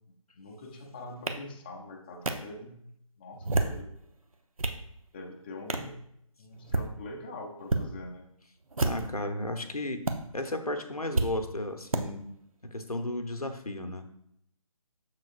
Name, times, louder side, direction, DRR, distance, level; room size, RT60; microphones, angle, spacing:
voice 1, 0.3-2.8 3.2-3.9 5.1-6.0 6.4-8.3, left 2 dB, 15° left, 0 dB, 0.5 m, -43 dB
sound 1, 1.3-1.4 2.3-2.4 3.3-3.8 4.3-4.8 5.7-5.9 6.6-6.9 7.6-7.8 8.7-9.2 10.0-10.1 11.1-11.3 11.9-12.0, right 2 dB, 70° right, 0.8 m, -28 dB
voice 2, 8.8-10.0 10.3-12.3 12.6-14.0, left 1 dB, 90° left, 7 dB, 0.9 m, -34 dB
6.8 x 6.4 x 2.5 m, 0.73 s
figure-of-eight pair, 150°, 19 cm